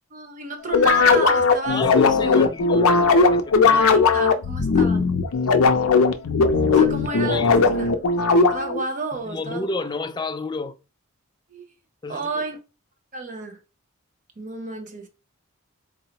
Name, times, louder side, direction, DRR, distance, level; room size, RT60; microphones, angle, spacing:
voice 1, 0.1-2.5 3.6-5.1 6.7-7.9 8.5-9.7 11.5-11.7 12.1-12.6 13.1-13.6 14.4-15.1, right 3 dB, 35° right, 0.8 m, -31 dB
sound 1, 0.7-8.8, left 4 dB, 75° left, 0.5 m, -18 dB
voice 2, 1.7-4.0 7.3-7.6 9.2-10.8 12.0-12.4, left 3 dB, 20° left, 0.3 m, -30 dB
4.0 x 2.8 x 2.8 m
head